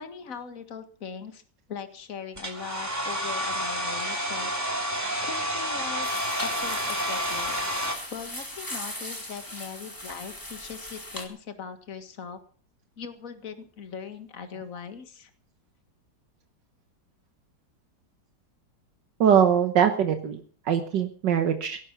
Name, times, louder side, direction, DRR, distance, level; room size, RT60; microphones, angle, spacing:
voice 1, 0.0-1.4 1.7-4.5 5.2-6.1 6.4-7.6 8.1-12.4 13.0-15.3, left 6 dB, 50° left, 9 dB, 2.0 m, -40 dB
Domestic sounds home sounds, 2.4-7.9, equal, 10° right, 2.9 m, -29 dB
sound 1, 6.0-11.3, left 1 dB, 10° left, 2.8 m, -38 dB
voice 2, 19.2-21.8, right 8 dB, 75° right, 7 dB, 1.9 m, -22 dB
17.5 x 11.5 x 6.0 m, 0.43 s
omnidirectional pair, 1.9 m